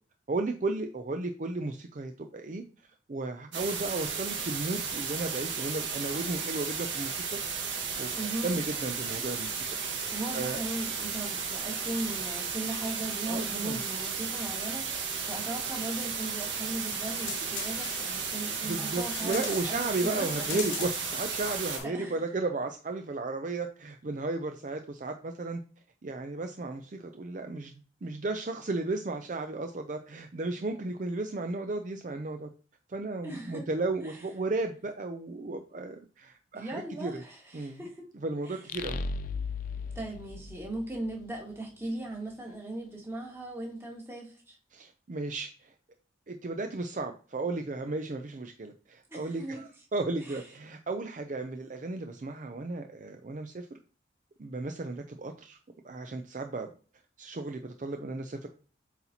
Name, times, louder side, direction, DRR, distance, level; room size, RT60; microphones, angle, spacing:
voice 1, 0.3-2.6 3.1-7.4 8.0-8.1 8.4-9.5 10.3-10.6 13.2-13.8 18.6-25.6 26.0-27.7 28.0-32.5 32.9-37.2 37.5-37.8 38.2-39.0 44.7-45.7 46.3-53.8 54.4-55.6 55.8-56.7 57.2-58.5, right 2 dB, 40° right, 6 dB, 0.4 m, -34 dB
sound 1, 3.5-21.8, right 5 dB, 75° right, 1.7 m, -34 dB
voice 2, 8.1-8.6 10.1-20.8 21.8-22.2 33.2-33.7 34.0-34.2 36.5-38.0 38.4-38.6 39.9-44.6 49.1-49.6 50.2-50.4, right 2 dB, 15° right, -1 dB, 1.7 m, -38 dB
sound 2, 16.9-21.8, left 6 dB, 85° left, 1.0 m, -41 dB
sound 3, 38.7-41.3, left 4 dB, 45° left, 0.3 m, -36 dB
8.1 x 4.1 x 2.8 m, 0.39 s
head